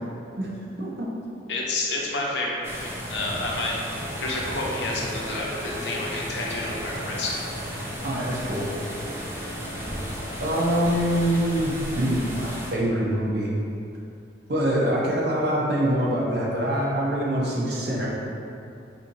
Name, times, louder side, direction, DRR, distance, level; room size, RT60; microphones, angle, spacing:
voice 1, 0.8-1.1 8.0-8.7 10.4-13.5 14.5-18.1, equal, 55° right, -4 dB, 0.6 m, -24 dB
voice 2, 1.5-7.4, left 2 dB, 65° left, -3 dB, 0.6 m, -30 dB
sound 1, 2.6-12.7, equal, 15° right, 0.3 m, -34 dB
sound 2, 3.9-10.7, equal, 5° left, 1.0 m, -40 dB
4.3 x 2.6 x 2.6 m, 2.5 s
head